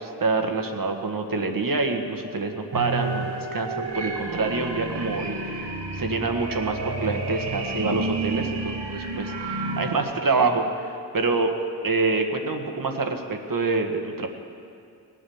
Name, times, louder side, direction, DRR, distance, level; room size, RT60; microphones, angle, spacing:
voice 1, 0.0-11.5 11.8-14.3, right 3 dB, 50° right, 4 dB, 1.7 m, -26 dB
sound 1, 2.7-10.0, right 2 dB, 70° right, 2.0 m, -30 dB
18.0 x 8.9 x 7.2 m, 2.4 s
cardioid pair, 55°, 41 cm